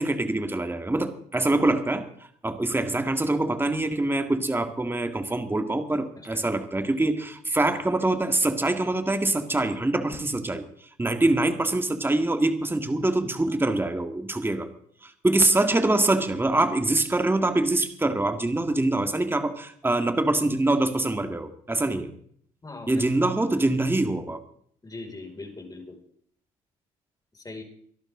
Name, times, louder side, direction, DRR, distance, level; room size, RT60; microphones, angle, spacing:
voice 1, 0.0-2.1 2.4-10.6 11.0-14.7 15.0-22.1 22.9-24.4, right 2 dB, 15° right, 7 dB, 2.0 m, -24 dB
voice 2, 22.6-23.1 24.8-26.0 27.3-27.6, left 3 dB, 20° left, 2 dB, 5.7 m, -40 dB
24.0 x 11.5 x 3.8 m, 0.62 s
supercardioid pair, 70°, 17 cm